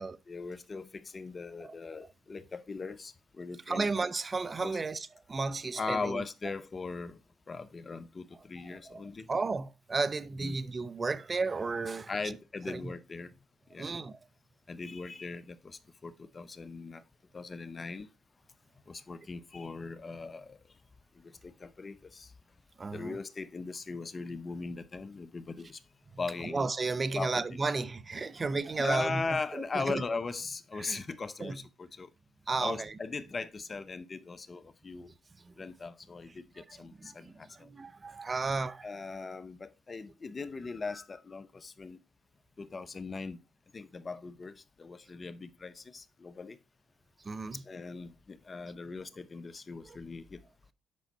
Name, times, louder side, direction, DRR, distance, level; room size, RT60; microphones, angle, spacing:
voice 1, 0.3-3.9 4.6-4.8 5.8-7.2 7.5-9.3 10.4-10.6 12.1-13.3 13.7-13.9 14.7-17.0 17.3-18.1 18.9-20.6 21.2-22.3 22.9-25.8 26.2-26.7 27.1-27.7 28.8-32.1 32.6-35.1 35.6-37.7 38.8-42.0 42.6-43.4 43.7-46.6 47.7-50.4, left 4 dB, 35° left, 0.8 m, -39 dB
voice 2, 3.7-6.2 8.6-9.0 9.3-12.1 12.7-12.9 13.8-14.2 22.8-23.2 26.4-29.2 29.5-30.0 30.8-31.0 31.4-31.6 32.5-33.0 35.4-35.5 36.6-38.9 47.2-47.6 49.8-50.0, right 3 dB, 35° right, 0.7 m, -33 dB
8.4 x 5.7 x 4.1 m
hypercardioid pair, 55°, 0 cm